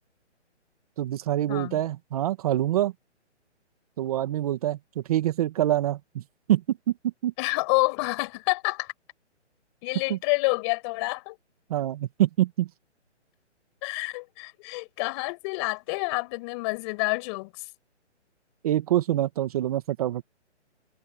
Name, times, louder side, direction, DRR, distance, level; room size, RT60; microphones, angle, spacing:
voice 1, 1.0-2.9 4.0-6.2 6.5-6.8 7.0-7.3 10.1-10.2 11.7-12.7 18.6-20.2, right 13 dB, 30° right, 1.8 m, -25 dB
voice 2, 1.5-1.8 7.4-8.9 9.8-11.4 13.8-17.6, left 28 dB, 25° left, 5.5 m, -28 dB
hypercardioid pair, 160°, 35 cm